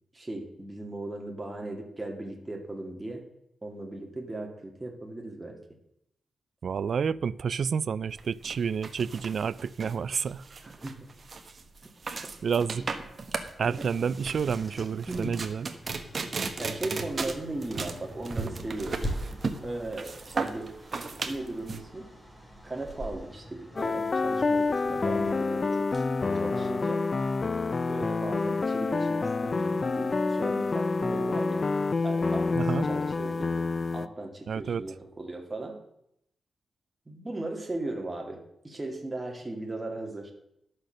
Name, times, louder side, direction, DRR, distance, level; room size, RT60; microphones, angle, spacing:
voice 1, 0.1-3.2 3.6-5.6 10.6-11.1 13.6-13.9 15.1-15.4 16.6-19.0 19.6-20.8 21.3-22.1 22.6-26.1 26.3-27.1 27.9-31.7 32.0-33.5 33.9-35.8 37.1-40.3, right 2 dB, 20° right, 2.2 m, -37 dB
voice 2, 6.6-10.4 12.1-12.8 13.6-15.7 32.5-32.9 34.5-34.8, right 6 dB, 65° right, 0.3 m, -29 dB
sound 1, 8.1-21.8, right 4 dB, 45° right, 1.1 m, -36 dB
sound 2, 14.2-27.0, equal, 10° left, 2.2 m, -43 dB
sound 3, 23.8-34.1, left 3 dB, 40° left, 0.4 m, -28 dB
11.5 x 6.6 x 6.4 m
wide cardioid pair, 100°, 0 cm